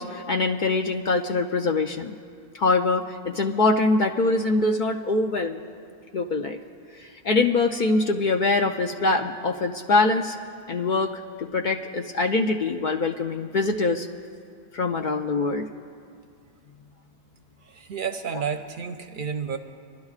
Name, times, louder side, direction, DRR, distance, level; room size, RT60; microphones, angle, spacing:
voice 1, 0.0-2.2 2.5-5.6 6.1-6.6 7.0-10.4 10.7-14.1 14.7-15.6, left 3 dB, 60° left, 3 dB, 0.5 m, -23 dB
voice 2, 17.6-19.6, right 6 dB, 60° right, 7 dB, 0.6 m, -31 dB
25.5 x 11.5 x 2.4 m, 2.3 s
omnidirectional pair, 1.1 m